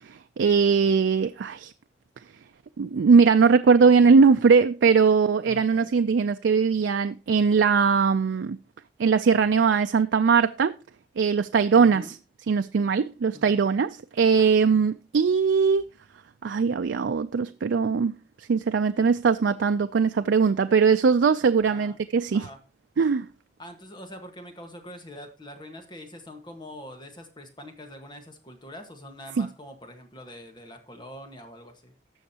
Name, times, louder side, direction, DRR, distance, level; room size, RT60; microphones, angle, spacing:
voice 1, 0.1-1.7 2.8-8.6 9.0-10.7 11.2-12.0 12.5-15.8 16.4-18.1 18.4-22.4 23.0-23.3 29.4-29.5, right 5 dB, 85° right, 0.4 m, -20 dB
voice 2, 5.4-5.9 11.7-12.2 13.3-13.6 21.6-22.0 22.3-22.6 23.6-31.9, left 1 dB, 25° left, 1.5 m, -44 dB
19.0 x 6.4 x 2.9 m
head